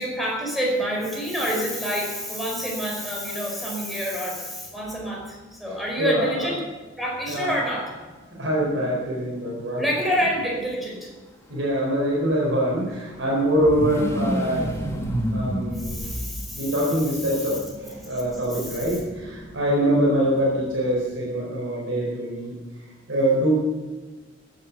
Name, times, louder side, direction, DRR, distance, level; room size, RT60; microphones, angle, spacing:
voice 1, 0.0-6.6 7.0-7.9 9.8-11.1 15.8-16.7 18.5-18.8, equal, ahead, -2 dB, 5.1 m, -27 dB
sound 1, 5.0-5.1 5.4-5.5 7.1-9.7 11.9-21.0, equal, 15° left, 2.3 m, -33 dB
voice 2, 6.0-6.5 7.3-7.5 8.4-9.9 11.5-14.8 15.3-16.1 16.5-22.5 23.1-23.5, right 1 dB, 75° right, -4 dB, 4.5 m, -24 dB
15.0 x 11.0 x 7.1 m, 1.3 s
head